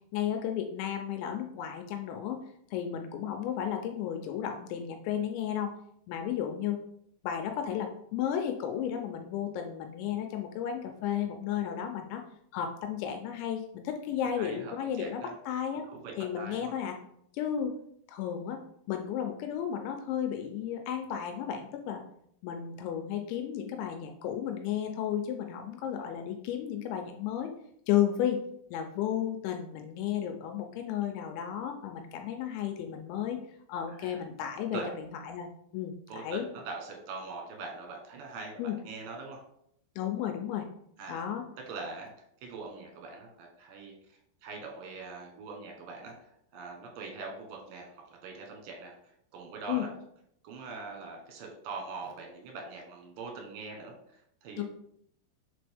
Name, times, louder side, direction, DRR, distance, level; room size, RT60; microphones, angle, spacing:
voice 1, 0.1-2.4 2.7-5.7 6.1-6.8 7.2-12.2 12.5-15.9 16.2-17.0 17.3-17.7 18.1-18.6 18.9-22.0 22.4-27.5 27.9-28.4 28.7-33.4 33.7-36.5 38.6-38.8 40.0-40.7 41.1-41.4 49.7-49.9 54.6-54.7, left 9 dB, 80° left, 4 dB, 2.7 m, -33 dB
voice 2, 14.4-15.4 15.9-16.7 33.9-34.2 34.7-34.9 36.1-39.4 41.0-41.2 41.7-42.1 42.4-43.9 44.4-46.2 46.5-49.0 49.3-49.9 50.4-53.9 54.4-54.6, right 4 dB, 70° right, 1 dB, 2.2 m, -42 dB
6.8 x 4.2 x 3.4 m, 0.71 s
omnidirectional pair, 5.6 m